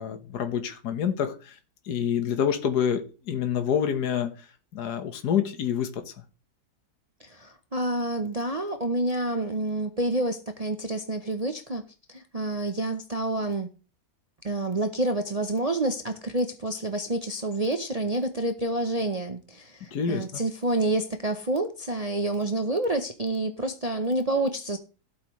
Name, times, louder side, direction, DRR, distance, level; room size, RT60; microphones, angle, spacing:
voice 1, 0.0-1.6 1.9-4.5 4.7-6.1 19.9-20.4, left 8 dB, 70° left, 1.8 m, -27 dB
voice 2, 7.2-11.8 12.1-13.7 14.4-24.8, right 2 dB, 35° right, 0.6 m, -28 dB
15.5 x 8.3 x 3.2 m
omnidirectional pair, 1.8 m